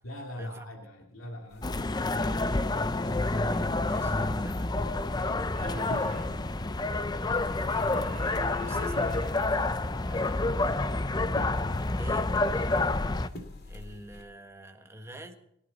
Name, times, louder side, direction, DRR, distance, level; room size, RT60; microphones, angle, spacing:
voice 1, 0.0-2.4 5.1-6.7, left 1 dB, 90° left, 1 dB, 2.5 m, -43 dB
sound 1, 1.5-14.2, left 1 dB, 50° left, 2.6 m, -46 dB
sound 2, 1.6-13.3, left 2 dB, 20° left, 0.5 m, -28 dB
voice 2, 3.0-4.7 8.5-9.1 10.1-11.3 12.0-12.7 13.7-15.4, right 1 dB, 15° right, 5 dB, 1.5 m, -45 dB
sound 3, 4.4-10.3, equal, 45° right, 3.4 m, -44 dB
29.5 x 11.5 x 4.0 m, 0.78 s
head